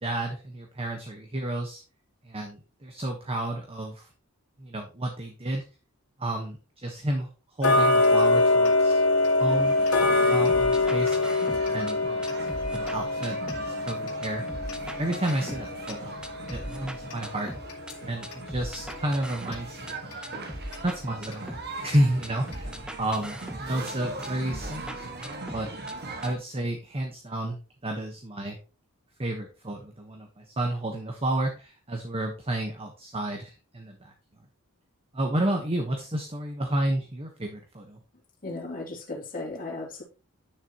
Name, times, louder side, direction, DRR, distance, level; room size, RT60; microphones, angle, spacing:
voice 1, 0.0-1.8 2.2-4.1 4.6-5.6 6.2-7.3 7.6-9.0 9.4-11.2 11.7-14.4 15.0-16.1 16.5-17.5 18.0-20.5 20.8-25.7 26.2-27.6 27.8-28.6 29.2-34.1 35.1-38.0, right 1 dB, 25° right, 3 dB, 1.2 m, -31 dB
Tick-tock, 7.6-18.5 18.9-19.0 19.5-19.6 20.1-20.2 20.7-20.8 21.3-21.4 21.9-22.0 22.5-22.6, left 2 dB, 90° left, 2.0 m, -25 dB
sound 1, 9.5-26.3, right 2 dB, 50° right, 1.8 m, -40 dB
sound 2, 10.5-11.9 12.2-13.9 14.2-15.9 16.2-17.9 18.2-19.9 20.2-21.9 22.2-23.9 24.2-25.9 26.2-26.3, equal, 5° right, 0.7 m, -40 dB
voice 2, 38.4-40.0, left 2 dB, 40° left, -1 dB, 2.7 m, -36 dB
9.9 x 6.8 x 3.0 m, 0.32 s
head